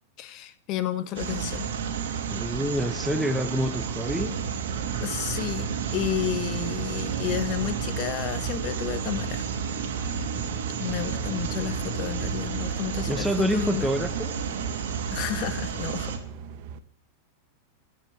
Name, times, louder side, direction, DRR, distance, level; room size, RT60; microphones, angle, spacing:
voice 1, 0.2-1.7 5.0-9.5 10.8-13.9 15.1-16.1, left 11 dB, 45° left, 11 dB, 1.2 m, -31 dB
sound 1, 1.1-16.2, right 6 dB, 75° right, 2.4 m, -31 dB
voice 2, 2.3-4.3 13.1-14.3, equal, ahead, 8 dB, 1.1 m, -27 dB
sound 2, 3.5-16.8, right 6 dB, 55° right, 1.2 m, -40 dB
14.0 x 6.0 x 9.2 m, 0.66 s
hypercardioid pair, 105°, 0 cm